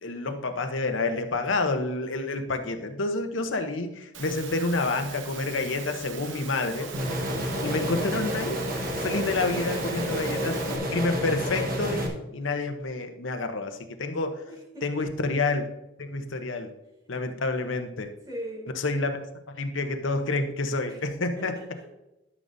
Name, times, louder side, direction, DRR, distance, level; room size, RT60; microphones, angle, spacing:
voice 1, 0.0-6.9 7.6-8.6 9.0-14.4 14.8-15.7 16.0-16.7 17.1-18.1 18.7-21.5, left 3 dB, 85° left, 7 dB, 0.9 m, -29 dB
Engine / Mechanisms, 4.1-10.8, right 6 dB, 75° right, 0.9 m, -41 dB
sound 1, 6.7-11.8, left 1 dB, 20° left, 1.7 m, -39 dB
sound 2, 6.9-12.1, equal, 50° right, 1.3 m, -30 dB
voice 2, 9.2-10.4 14.5-15.1 18.3-18.7 20.9-21.8, right 1 dB, 20° right, -5 dB, 3.4 m, -42 dB
13.0 x 6.5 x 2.7 m, 0.95 s
head